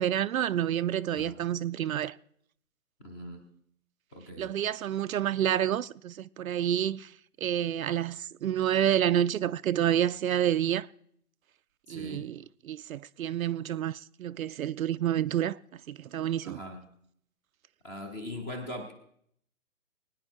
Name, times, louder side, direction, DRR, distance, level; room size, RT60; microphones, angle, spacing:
voice 1, 0.0-2.2 4.4-7.1 7.4-10.9 11.9-16.6, right 10 dB, 65° right, 0.5 m, -29 dB
voice 2, 1.1-1.4 3.0-3.4 4.1-4.5 11.9-12.3 16.4-16.9 17.8-18.9, left 1 dB, 10° left, 0.6 m, -41 dB
21.5 x 9.8 x 4.4 m
hypercardioid pair, 150°, 45 cm